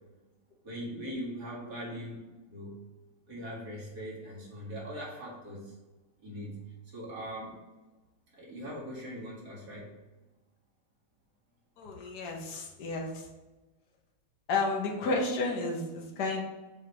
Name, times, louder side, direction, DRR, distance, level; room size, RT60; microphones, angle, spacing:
voice 1, 0.6-2.8 3.3-5.7 6.2-7.6 8.3-9.9, equal, 45° right, -5 dB, 2.6 m, -41 dB
voice 2, 11.8-13.2 14.5-16.4, left 3 dB, 55° left, 0 dB, 1.6 m, -32 dB
6.6 x 3.7 x 4.7 m, 1.2 s
omnidirectional pair, 2.4 m